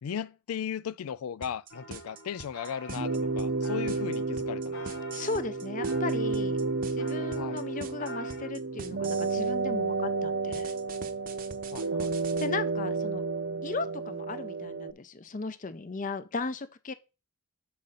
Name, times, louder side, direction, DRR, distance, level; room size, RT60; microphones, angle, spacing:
voice 1, 0.0-5.0 7.4-7.6 11.7-12.1, left 8 dB, 85° left, 0.4 m, -37 dB
sound 1, 1.4-9.4 10.5-12.5, right 4 dB, 40° right, 0.8 m, -44 dB
sound 2, 1.7-8.5, equal, 55° left, 1.4 m, -46 dB
sound 3, 2.9-14.9, right 3 dB, 60° right, 0.5 m, -31 dB
voice 2, 5.1-6.6 6.9-10.7 12.4-13.2 13.6-16.9, left 3 dB, 35° left, 0.5 m, -36 dB
6.8 x 5.2 x 5.5 m
head